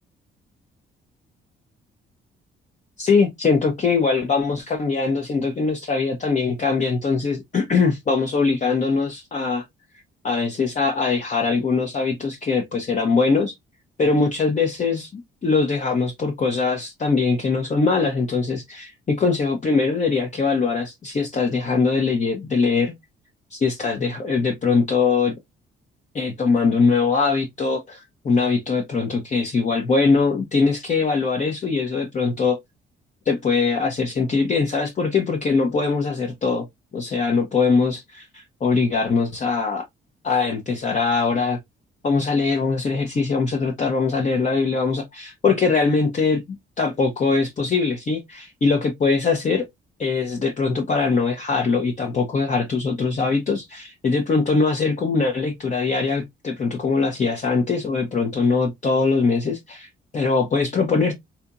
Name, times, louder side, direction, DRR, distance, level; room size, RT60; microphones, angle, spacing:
voice 1, 3.0-9.6 10.2-13.5 14.0-22.9 23.5-25.3 26.1-32.6 33.3-36.7 36.9-39.9 40.2-41.6 42.0-46.4 46.8-49.7 50.0-61.1, left 4 dB, 40° left, 0.8 m, -22 dB
3.3 x 2.9 x 2.5 m
cardioid pair, 90°, 20 cm